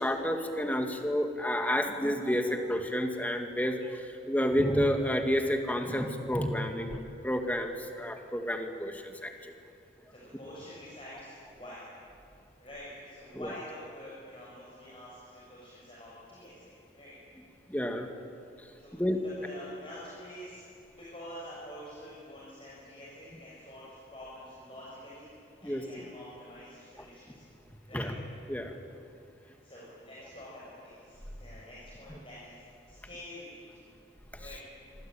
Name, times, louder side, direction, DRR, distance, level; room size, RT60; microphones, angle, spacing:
voice 1, 0.0-9.5 13.3-13.5 17.7-18.1 18.6-18.7 18.9-19.2 25.6-25.8 27.9-28.2 28.5-28.7, equal, 10° left, 4 dB, 2.2 m, -30 dB
voice 2, 10.1-11.9 12.6-17.2 18.8-19.0 19.2-25.3 25.6-27.4 27.8-28.1 29.4-32.6 32.9-33.9 34.4-34.6, equal, 30° left, -7 dB, 6.9 m, -47 dB
27.0 x 24.0 x 9.1 m, 2.5 s
head